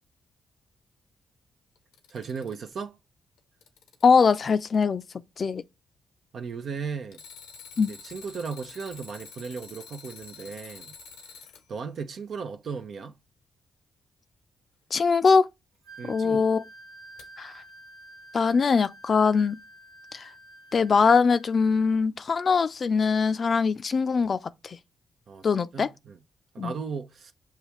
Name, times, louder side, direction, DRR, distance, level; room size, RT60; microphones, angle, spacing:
Alarm, 1.8-2.7 3.4-4.8 7.1-11.6 14.9-15.0 17.2-17.3, left 5 dB, 85° left, 0.7 m, -47 dB
voice 1, 2.1-3.0 6.3-7.2 7.9-10.9 11.7-13.1 16.0-16.5 25.3-25.5 25.7-26.2 26.5-27.3, right 5 dB, 65° right, 0.5 m, -36 dB
voice 2, 4.0-5.0 5.4-5.6 7.8-7.9 14.9-15.5 16.1-16.6 17.4-17.6 18.3-19.6 20.1-20.3 20.7-24.8 25.4-25.9 26.6-26.7, left 5 dB, 55° left, 0.4 m, -22 dB
Wind instrument woodwind instrument, 15.8-22.0, right 1 dB, 85° right, 1.3 m, -50 dB
6.5 x 2.4 x 3.0 m
supercardioid pair, 50°, 0 cm